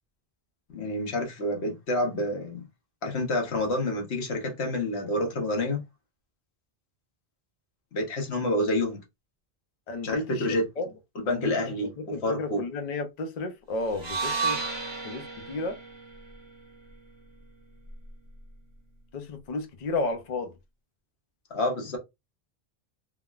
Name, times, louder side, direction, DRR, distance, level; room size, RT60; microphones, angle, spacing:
voice 1, 0.7-2.6 3.0-5.8 7.9-9.0 10.0-10.7 11.1-11.9 12.2-12.6 21.5-22.0, left 1 dB, 80° left, 1.2 m, -28 dB
voice 2, 9.9-10.9 11.3-11.5 12.0-14.6 15.0-15.8 19.1-20.5, left 3 dB, 50° left, 0.6 m, -32 dB
sound 1, 13.9-18.1, right 4 dB, 30° right, 0.6 m, -34 dB
3.5 x 2.1 x 2.3 m
omnidirectional pair, 1.1 m